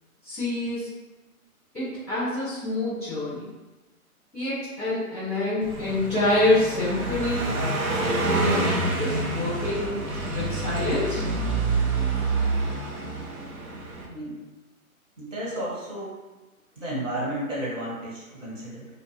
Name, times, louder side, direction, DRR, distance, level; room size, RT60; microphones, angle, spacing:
voice 1, 0.2-0.9 1.7-3.5 4.3-10.0 10.3-11.2, left 2 dB, ahead, -20 dB, 0.3 m, -27 dB
Car passing by, 5.6-14.1, right 2 dB, 75° right, 0.8 m, -27 dB
voice 2, 14.1-14.4 15.2-16.1 16.8-18.9, right 1 dB, 55° right, -6 dB, 1.5 m, -32 dB
2.4 x 2.2 x 3.2 m, 1.1 s
hypercardioid pair, 145°, 43 cm